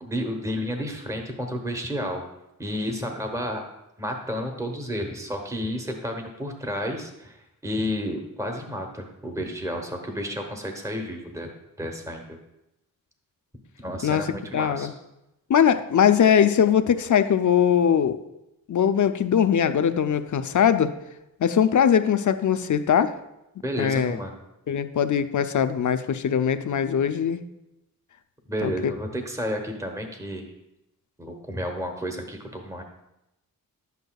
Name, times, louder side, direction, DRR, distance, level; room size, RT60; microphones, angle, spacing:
voice 1, 0.0-2.2 2.6-3.6 4.0-7.4 7.6-11.5 11.8-12.4 13.8-14.9 23.6-24.4 28.5-30.4 31.2-32.8, equal, 10° right, 3 dB, 1.0 m, -31 dB
voice 2, 14.5-14.9 15.5-18.2 18.7-20.9 21.4-23.1 23.8-24.2 24.7-27.4 28.6-28.9, left 8 dB, 60° left, 10 dB, 0.5 m, -21 dB
10.5 x 8.1 x 2.3 m, 0.89 s
wide cardioid pair, 95°, 35 cm